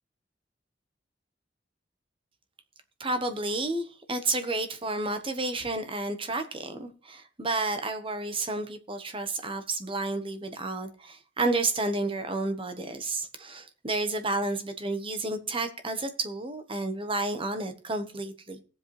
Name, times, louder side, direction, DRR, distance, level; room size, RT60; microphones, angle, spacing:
voice 1, 3.0-18.6, right 2 dB, 30° right, 1.2 m, -31 dB
17.5 x 7.7 x 3.3 m
head